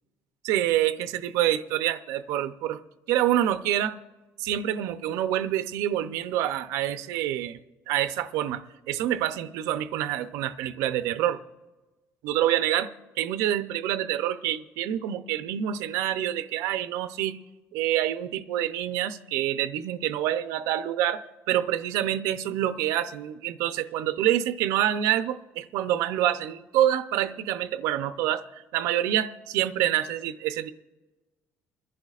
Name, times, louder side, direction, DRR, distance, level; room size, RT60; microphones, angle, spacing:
voice 1, 0.4-2.8 3.1-4.0 4.4-7.6 7.9-8.6 8.9-11.4 12.2-12.9 13.2-17.4 17.7-21.2 21.5-28.4 28.7-30.7, right 12 dB, 80° right, 11 dB, 0.6 m, -26 dB
29.0 x 10.5 x 2.4 m, 1.2 s
cardioid pair, 180°, 5 cm